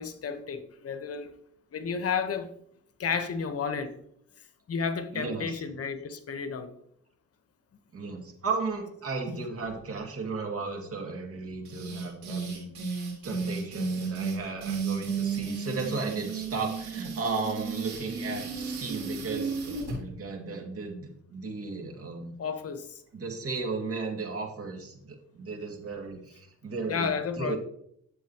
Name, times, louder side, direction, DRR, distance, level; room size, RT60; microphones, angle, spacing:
voice 1, 0.0-1.3 1.7-2.5 3.0-3.9 4.7-6.7 22.4-23.0 26.9-27.6, left 6 dB, 50° left, 8 dB, 1.1 m, -32 dB
voice 2, 5.1-5.6 7.9-12.7 13.2-22.3 23.1-27.6, right 4 dB, 50° right, 2 dB, 2.3 m, -35 dB
sound 1, 11.6-20.0, right 5 dB, 75° right, 4.0 m, -33 dB
11.0 x 7.8 x 3.0 m, 0.69 s
cardioid pair, 90°, 30 cm